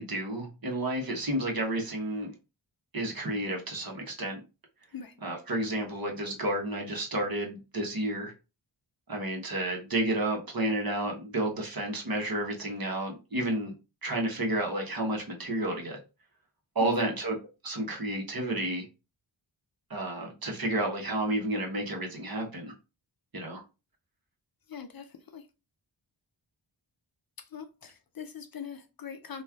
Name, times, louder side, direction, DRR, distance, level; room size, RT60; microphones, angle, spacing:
voice 1, 0.0-2.3 2.9-4.4 5.2-8.3 9.1-13.7 14.0-16.0 16.7-17.4 17.6-18.8 19.9-22.7 23.3-23.6, right 1 dB, 50° right, 1.0 m, -31 dB
voice 2, 24.7-25.5 27.4-29.4, left 7 dB, 50° left, 0.5 m, -42 dB
3.1 x 2.3 x 2.3 m
wide cardioid pair, 70°, 46 cm